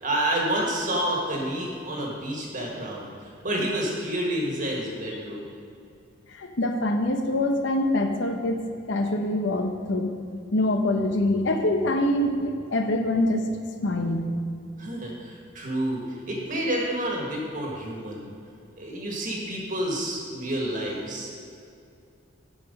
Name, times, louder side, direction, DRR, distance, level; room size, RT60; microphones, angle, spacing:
voice 1, 0.0-3.1 3.4-5.4 14.8-18.3 18.8-21.3, right 1 dB, 40° right, -2 dB, 1.7 m, -29 dB
voice 2, 6.3-10.1 10.5-13.5 13.8-14.3, left 1 dB, 70° left, 5 dB, 0.9 m, -25 dB
11.0 x 4.9 x 5.3 m, 2.5 s
head